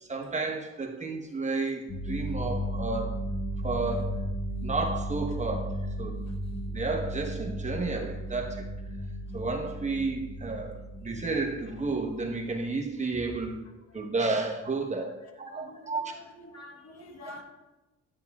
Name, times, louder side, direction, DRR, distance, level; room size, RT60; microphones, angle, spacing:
voice 1, 0.0-3.2 3.6-4.2 4.6-6.2 6.7-8.7 9.3-13.7 13.9-16.1 17.2-17.3, right 3 dB, 25° right, 1 dB, 1.0 m, -32 dB
sound 1, 1.9-12.7 13.3-13.6, equal, 20° left, 1.1 m, -35 dB
voice 2, 15.5-17.4, left 1 dB, 60° left, 2 dB, 1.4 m, -47 dB
9.4 x 7.3 x 2.4 m, 1.0 s
cardioid pair, 90°, 30 cm